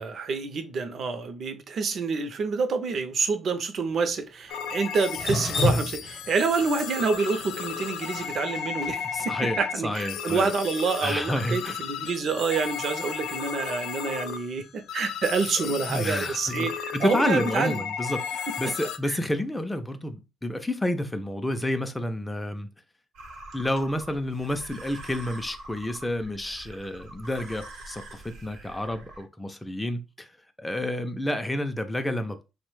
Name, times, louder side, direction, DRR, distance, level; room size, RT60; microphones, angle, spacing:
voice 1, 0.0-17.8 18.5-18.6 19.0-19.2, right 4 dB, 60° right, 0.5 m, -28 dB
sound 1, 4.5-19.0, left 8 dB, 85° left, 0.3 m, -34 dB
Drip, 5.1-9.3, left 2 dB, 45° left, 0.8 m, -29 dB
voice 2, 9.1-10.5 11.0-11.7 15.6-22.7 23.5-30.3 30.6-32.4, left 1 dB, 10° left, 0.4 m, -30 dB
sound 2, 23.1-29.2, right 2 dB, 90° right, 0.8 m, -44 dB
2.9 x 2.1 x 3.1 m
cardioid pair, 90°, 0 cm